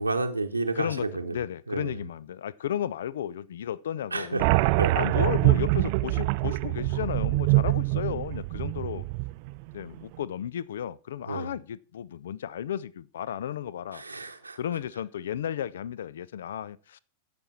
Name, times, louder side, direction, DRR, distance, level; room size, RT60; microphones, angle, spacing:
voice 1, 0.0-1.4 1.7-2.0 4.1-5.0 11.3-11.5 13.9-14.6, right 3 dB, 80° right, 0.9 m, -31 dB
voice 2, 1.3-4.5 5.0-9.1 9.7-14.0 14.6-17.0, left 10 dB, 60° left, 0.4 m, -33 dB
sound 1, 4.4-9.6, right 22 dB, 45° right, 0.4 m, -25 dB
15.0 x 5.9 x 4.4 m
figure-of-eight pair, 90°, 0 cm